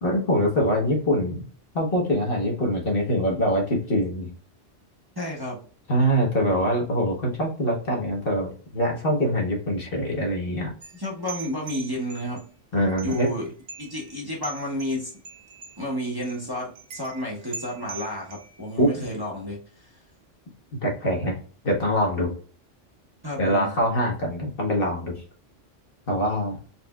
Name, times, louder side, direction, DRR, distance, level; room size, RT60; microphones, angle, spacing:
voice 1, 0.0-1.4 1.7-4.3 5.9-10.7 12.7-13.3 18.8-18.9 20.8-21.3 21.6-22.3 23.4-25.2 26.1-26.6, equal, 50° left, -1 dB, 1.2 m, -24 dB
voice 2, 5.2-5.6 10.9-12.4 13.0-13.5 13.8-15.1 15.8-19.9 23.2-23.7, equal, 20° right, -5 dB, 1.0 m, -31 dB
sound 1, 10.8-12.4 12.9-13.4 13.7-14.2 14.4-15.8 16.2-16.4 16.7-18.7, right 6 dB, 60° right, 0.9 m, -42 dB
4.3 x 3.3 x 2.3 m, 0.40 s
omnidirectional pair, 1.3 m